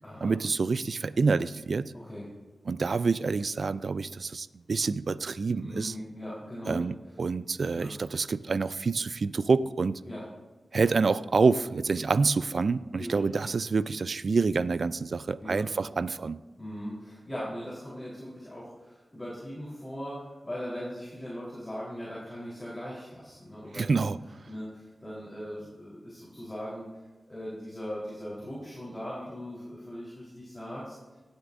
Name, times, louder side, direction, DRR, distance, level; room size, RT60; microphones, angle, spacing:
voice 1, 0.2-1.9 2.7-5.9 6.7-10.0 10.7-16.4 23.7-24.2, right 4 dB, 65° right, 16 dB, 0.3 m, -27 dB
voice 2, 1.9-2.3 5.6-6.8 7.7-7.9 10.0-10.2 12.9-13.1 15.4-15.6 16.6-23.9 24.5-26.9 27.3-31.0, equal, 20° left, -8 dB, 3.7 m, -39 dB
16.5 x 8.1 x 2.6 m, 1.2 s
cardioid pair, 50°, 0 cm